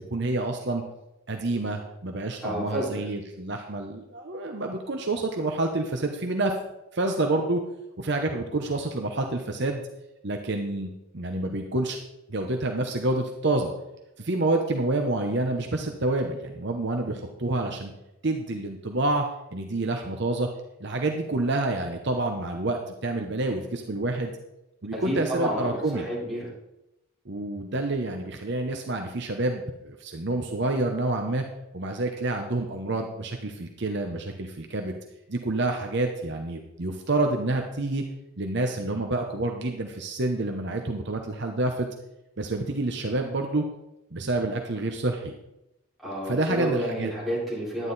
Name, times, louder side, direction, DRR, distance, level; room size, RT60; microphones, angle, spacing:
voice 1, 0.1-0.8 1.3-6.5 6.9-7.6 8.0-9.8 10.2-12.0 12.3-13.7 14.2-17.9 18.2-19.2 19.5-20.5 20.8-24.3 24.8-26.1 27.3-31.4 31.7-35.0 35.3-38.0 38.4-41.9 42.4-43.6 44.1-45.3 46.2-47.1, right 2 dB, 50° right, 3 dB, 0.9 m, -28 dB
voice 2, 2.4-3.0 24.9-26.4 46.0-47.9, right 1 dB, ahead, -9 dB, 4.7 m, -30 dB
11.0 x 9.5 x 4.1 m, 0.89 s
head